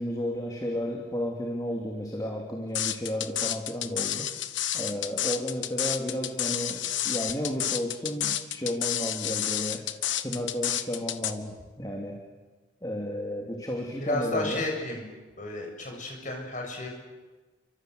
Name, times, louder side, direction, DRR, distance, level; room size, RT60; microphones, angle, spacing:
voice 1, 0.0-4.3 4.7-9.9 10.2-12.2 12.8-14.7, equal, 20° left, 1 dB, 2.9 m, -33 dB
sound 1, 2.7-11.3, left 12 dB, 70° left, 1.4 m, -30 dB
voice 2, 14.0-15.1 15.4-16.9, left 2 dB, 40° left, 1 dB, 7.5 m, -32 dB
30.0 x 25.0 x 8.0 m, 1.3 s
head